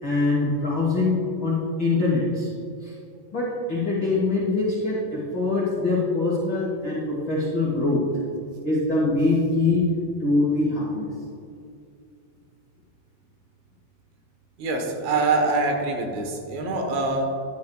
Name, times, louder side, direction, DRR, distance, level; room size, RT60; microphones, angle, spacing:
voice 1, 0.0-1.1 1.4-2.5 2.8-2.9 3.3-8.0 8.6-9.8 10.2-11.1, left 3 dB, 65° left, -6 dB, 1.1 m, -23 dB
voice 2, 14.6-17.4, right 3 dB, 85° right, 2 dB, 3.5 m, -24 dB
11.5 x 11.5 x 2.3 m, 2.5 s
omnidirectional pair, 5.0 m